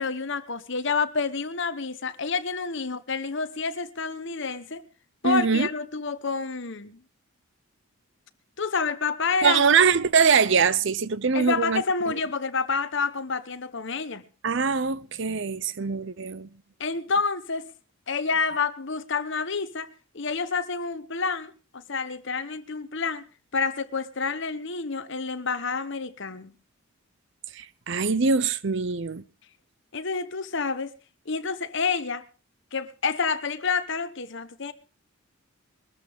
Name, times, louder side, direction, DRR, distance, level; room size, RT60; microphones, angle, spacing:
voice 1, 0.0-4.8 5.2-7.0 8.6-9.6 11.3-14.2 16.8-17.7 18.1-19.9 20.1-23.2 23.5-26.5 29.9-30.9 31.3-32.2 32.7-34.7, left 4 dB, 55° left, 1.1 m, -28 dB
voice 2, 5.2-5.7 9.4-11.8 14.4-16.5 27.5-29.2, right 5 dB, 55° right, 0.7 m, -23 dB
21.5 x 13.5 x 3.6 m
head